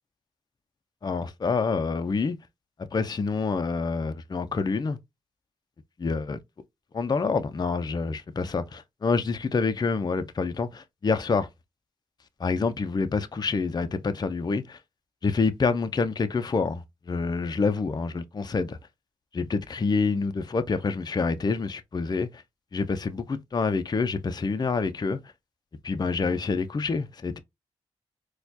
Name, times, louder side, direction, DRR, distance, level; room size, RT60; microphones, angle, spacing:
voice 1, 1.0-2.4 2.9-5.0 6.0-6.4 6.9-11.5 12.4-14.8 15.2-18.8 19.3-22.4 22.7-25.2 25.8-27.4, left 4 dB, 35° left, 0.5 m, -27 dB
4.2 x 2.3 x 2.7 m
cardioid pair, 55°, 12 cm